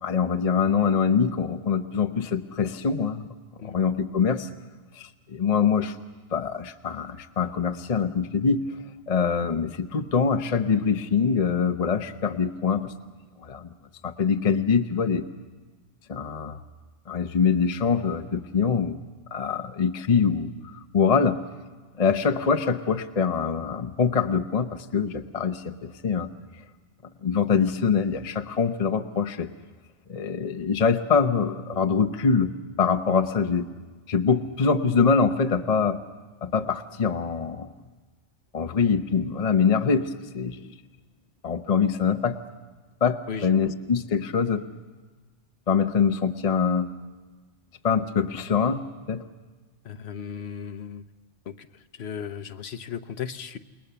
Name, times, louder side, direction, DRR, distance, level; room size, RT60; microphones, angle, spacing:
voice 1, 0.0-3.2 3.6-4.5 5.0-6.0 6.3-8.6 9.1-12.9 13.4-13.7 14.0-15.2 16.1-16.6 17.1-19.0 19.3-21.4 22.0-26.3 27.2-29.5 30.1-32.5 32.8-33.7 34.1-36.0 36.4-37.7 38.5-40.7 41.4-42.4 43.0-44.6 45.7-46.9 47.8-49.2, left 6 dB, 35° left, 7 dB, 0.8 m, -24 dB
voice 2, 49.8-51.0 51.5-51.7 51.9-53.6, left 7 dB, 65° left, 9 dB, 1.1 m, -36 dB
29.0 x 20.0 x 6.9 m, 1.3 s
omnidirectional pair, 1.2 m